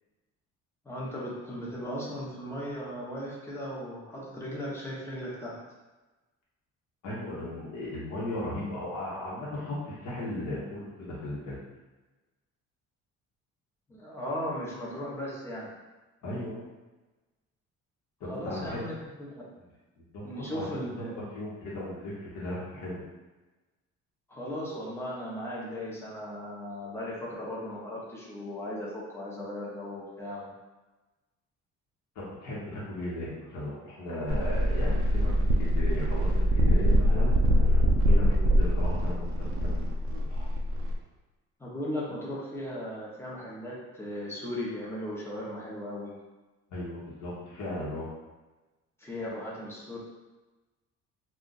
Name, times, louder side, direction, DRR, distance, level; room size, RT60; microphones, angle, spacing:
voice 1, 0.8-5.6 13.9-15.7 18.2-19.4 20.2-21.1 24.3-30.5 41.6-46.1 49.0-50.0, left 1 dB, 10° left, -6 dB, 0.7 m, -37 dB
voice 2, 7.0-11.6 16.2-16.6 18.2-18.8 19.6-19.7 20.1-23.0 32.1-37.3 37.6-40.5 46.7-48.1, left 1 dB, 60° left, -7 dB, 1.0 m, -36 dB
sound 1, 34.3-40.9, equal, 50° right, 0.5 m, -24 dB
2.4 x 2.3 x 3.8 m, 1.2 s
cardioid pair, 155°, 30 cm